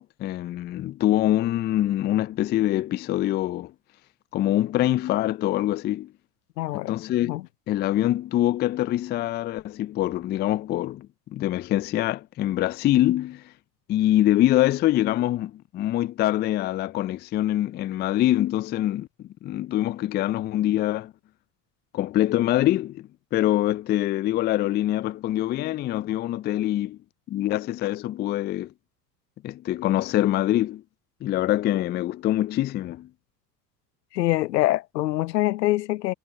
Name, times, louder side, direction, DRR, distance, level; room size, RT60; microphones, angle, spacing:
voice 1, 0.0-3.7 4.3-6.1 6.7-7.4 7.7-13.4 13.9-21.1 21.9-27.0 27.3-28.7 29.4-30.8 31.2-33.1, left 14 dB, 25° left, 0.4 m, -24 dB
voice 2, 6.6-7.0 7.2-7.4 34.1-36.1, left 16 dB, 80° left, 0.7 m, -24 dB
hypercardioid pair, 75°, 48 cm